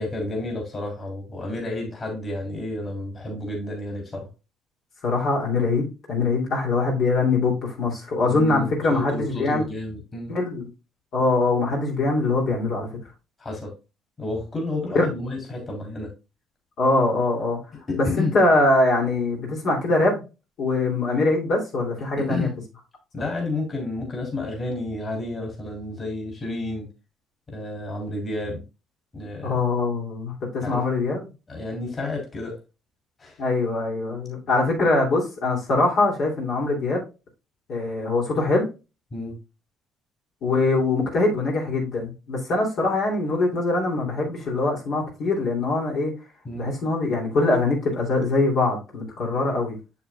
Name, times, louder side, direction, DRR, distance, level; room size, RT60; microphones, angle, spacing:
voice 1, 0.0-4.3 8.3-10.3 13.4-13.7 14.2-16.1 17.9-18.4 22.2-22.5 23.1-26.9 27.5-28.6 29.1-29.5 30.6-30.8 31.5-32.6 33.2-33.3 39.1-39.4 46.4-46.7, left 2 dB, 35° left, 1 dB, 3.2 m, -30 dB
voice 2, 5.0-9.6 10.3-10.7 11.1-12.9 14.9-15.1 16.8-17.6 17.9-20.2 20.6-22.5 29.4-31.3 33.4-37.0 37.7-38.7 40.4-46.1 46.5-49.7, left 2 dB, 65° left, -1 dB, 2.7 m, -23 dB
7.1 x 7.1 x 2.2 m, 0.28 s
supercardioid pair, 80°, 0 cm